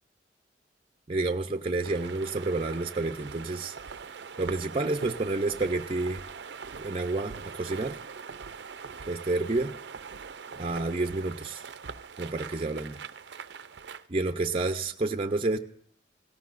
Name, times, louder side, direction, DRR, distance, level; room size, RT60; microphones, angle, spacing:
voice 1, 1.1-3.7 4.4-6.2 6.8-8.0 9.0-9.8 10.6-11.6 12.2-13.0 14.1-15.6, right 2 dB, 30° right, 6 dB, 0.6 m, -29 dB
sound 1, 1.8-14.0, right 5 dB, 75° right, 0.6 m, -42 dB
17.5 x 17.0 x 2.6 m, 0.70 s
head